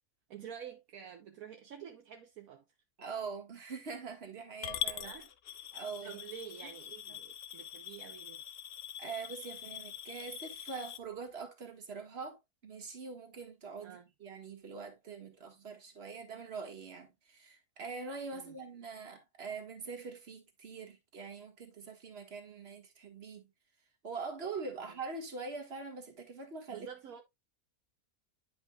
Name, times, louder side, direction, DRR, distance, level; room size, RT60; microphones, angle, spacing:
voice 1, 0.3-2.6 5.0-5.3 6.0-8.4 13.8-14.1 18.3-18.6 24.8-25.0 26.7-27.2, right 8 dB, 70° right, 1.2 m, -48 dB
voice 2, 3.0-5.1 5.7-6.2 7.1-7.2 9.0-12.4 12.6-23.4 24.0-26.9, right 4 dB, 45° right, 1.8 m, -43 dB
Coin (dropping) / Glass, 4.6-11.0, left 10 dB, 65° left, 0.6 m, -43 dB
10.0 x 5.3 x 2.3 m
omnidirectional pair, 1.6 m